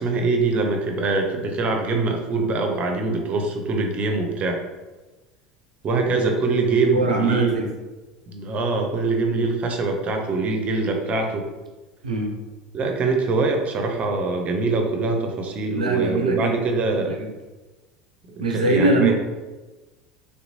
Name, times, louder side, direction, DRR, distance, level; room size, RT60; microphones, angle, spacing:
voice 1, 0.0-4.6 5.8-7.6 8.3-11.5 12.7-17.1 18.3-19.1, right 3 dB, 35° right, 3 dB, 0.6 m, -23 dB
voice 2, 6.9-7.7 9.3-9.5 12.0-12.3 15.7-16.6 16.9-17.3 18.4-19.1, right 2 dB, 85° right, 1 dB, 0.5 m, -23 dB
3.4 x 2.9 x 2.7 m, 1.2 s
figure-of-eight pair, 75°, 4 cm